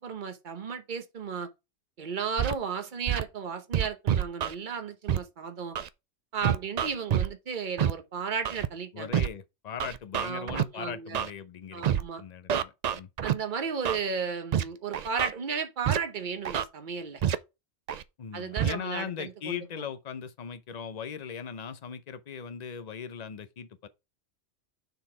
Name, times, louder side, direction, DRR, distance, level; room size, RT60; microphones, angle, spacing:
voice 1, 0.0-1.5 2.0-5.8 6.3-9.1 10.2-11.2 11.7-12.2 13.2-17.2 18.3-19.8, right 6 dB, 45° right, 1.0 m, -34 dB
Scratching (performance technique), 2.4-2.5 3.1-3.2 3.7-4.5 5.1-5.2 5.7-5.9 6.4-7.3 7.8-7.9 8.4-8.7 9.1-9.3 9.8-10.6 11.1-11.3 11.8-12.0 12.5-13.3 13.8-14.0 14.5-14.6 14.9-15.3 15.8-16.0 16.4-16.6 17.2-17.3 17.9-18.0 18.6-18.7, right 9 dB, 80° right, 0.3 m, -27 dB
voice 2, 8.9-13.1 18.2-23.9, left 7 dB, 45° left, 0.6 m, -39 dB
6.9 x 4.0 x 4.8 m
omnidirectional pair, 1.2 m